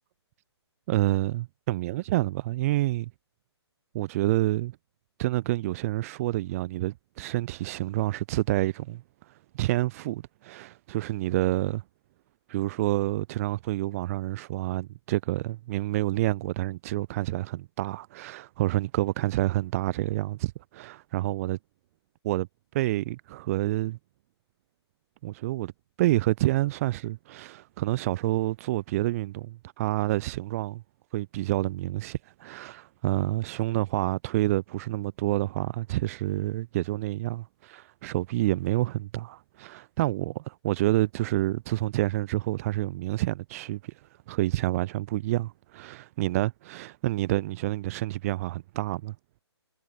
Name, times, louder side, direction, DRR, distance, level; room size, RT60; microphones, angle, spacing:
voice 1, 0.9-3.1 3.9-4.8 5.2-11.8 12.5-21.6 22.2-22.5 22.7-24.0 25.2-25.7 26.0-30.8 31.1-49.1, right 17 dB, 30° right, 4.5 m, -28 dB
figure-of-eight pair, 140°, 15 cm